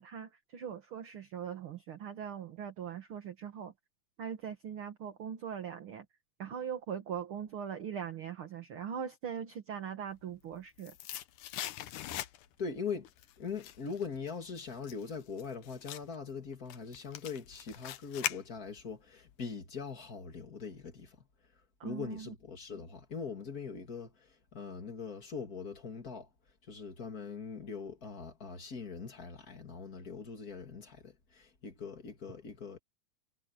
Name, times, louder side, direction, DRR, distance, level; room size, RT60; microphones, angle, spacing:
voice 1, 0.0-3.7 4.2-6.1 6.4-10.9 21.8-22.3, right 8 dB, 50° right, 2.0 m, -41 dB
sound 1, 10.3-12.7 13.1-18.9 19.2-19.3, left 12 dB, 75° left, 2.5 m, -42 dB
voice 2, 12.6-13.1 13.4-21.2 21.8-26.3 26.7-32.8, left 5 dB, 30° left, 2.4 m, -42 dB
omnidirectional pair, 3.7 m